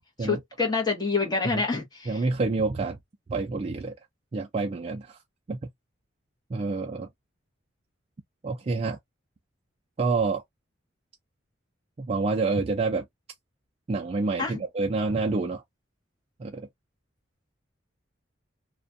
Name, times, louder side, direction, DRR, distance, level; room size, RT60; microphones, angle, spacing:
voice 1, 0.2-2.2 14.4-14.6, left 4 dB, 20° left, 0.9 m, -27 dB
voice 2, 2.1-3.0 3.3-3.9 4.3-5.2 5.5-5.6 6.5-7.1 8.4-9.0 10.0-10.4 12.0-13.1 13.9-15.6 16.4-16.7, right 3 dB, 30° right, 0.3 m, -27 dB
2.4 x 2.2 x 2.5 m
head